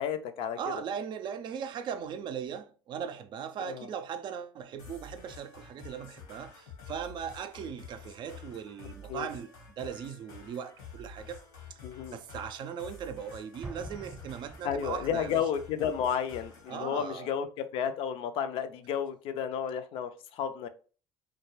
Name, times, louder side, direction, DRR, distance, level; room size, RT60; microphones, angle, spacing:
voice 1, 0.0-0.6 3.6-3.9 9.1-9.3 11.8-12.2 14.6-20.7, left 8 dB, 65° left, 0.4 m, -32 dB
voice 2, 0.6-11.4 11.7-11.8 12.1-15.4 16.7-17.3, right 8 dB, 50° right, 0.4 m, -39 dB
sound 1, 4.8-16.8, left 5 dB, 85° left, 1.0 m, -49 dB
Explosion, 13.6-15.2, right 3 dB, 25° right, 0.7 m, -45 dB
2.2 x 2.2 x 3.1 m
supercardioid pair, 80°, 10 cm